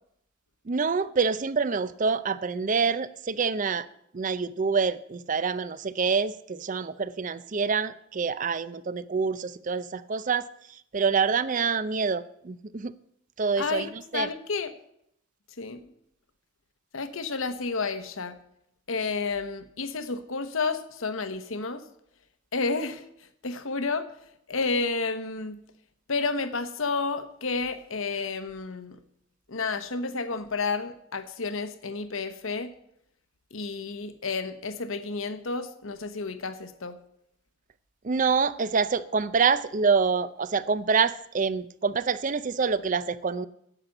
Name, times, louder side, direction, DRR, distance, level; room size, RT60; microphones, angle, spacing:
voice 1, 0.7-3.9 4.1-10.5 10.9-12.9 13.4-14.3 38.0-43.5, right 5 dB, 40° right, 16 dB, 0.5 m, -26 dB
voice 2, 13.6-14.7 15.6-15.9 16.9-18.4 18.9-21.8 22.5-23.0 23.4-24.1 24.5-25.6 26.1-29.0 29.5-32.7 33.5-37.0, left 4 dB, 75° left, 10 dB, 1.1 m, -31 dB
9.9 x 8.3 x 7.8 m, 0.74 s
head